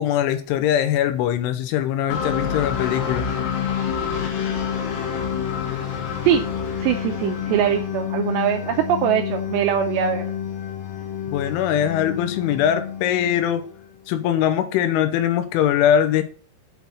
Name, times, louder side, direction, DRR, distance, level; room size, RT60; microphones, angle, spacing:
voice 1, 0.0-3.3 11.3-13.6 14.1-16.2, left 10 dB, 80° left, 3.1 m, -21 dB
sound 1, 2.1-13.9, left 8 dB, 65° left, 3.5 m, -28 dB
voice 2, 6.8-10.2, right 9 dB, 85° right, 2.4 m, -22 dB
8.2 x 6.2 x 6.8 m
omnidirectional pair, 6.0 m